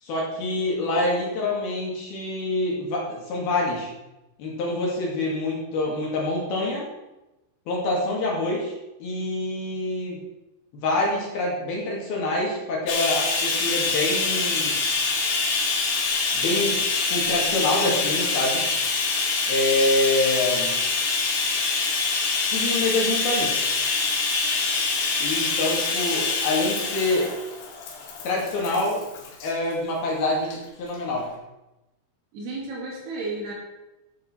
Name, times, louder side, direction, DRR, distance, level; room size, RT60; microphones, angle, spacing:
voice 1, 0.0-3.9 4.4-6.8 7.7-8.7 9.0-10.2 10.7-14.8 16.3-18.6 19.5-20.8 22.5-23.6 25.2-27.3 28.2-29.0 29.4-31.3, left 2 dB, 60° left, -3 dB, 3.7 m, -26 dB
Bathtub (filling or washing), 12.9-29.5 30.4-30.6 30.9-31.0, left 4 dB, 80° left, 4.7 m, -25 dB
voice 2, 32.3-33.5, right 2 dB, 60° right, -3 dB, 4.2 m, -33 dB
13.0 x 7.7 x 4.5 m, 0.99 s
omnidirectional pair, 5.6 m